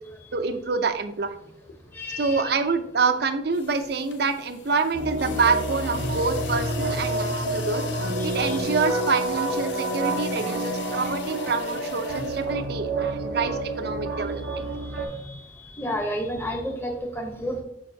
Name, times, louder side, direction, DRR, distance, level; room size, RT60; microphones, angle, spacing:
voice 1, 0.3-1.4 2.2-7.8 8.2-14.6 14.9-15.1, right 4 dB, 60° right, 9 dB, 0.6 m, -26 dB
sound 1, 1.6-1.9 3.6-12.8, left 5 dB, 75° left, 0.7 m, -36 dB
voice 2, 1.9-2.5 8.2-8.6 11.7-11.8 14.5-15.4 15.7-17.6, equal, 15° left, 2 dB, 0.9 m, -32 dB
sound 2, 4.9-15.1, right 2 dB, 90° right, 0.9 m, -29 dB
6.5 x 5.3 x 2.7 m, 0.78 s
head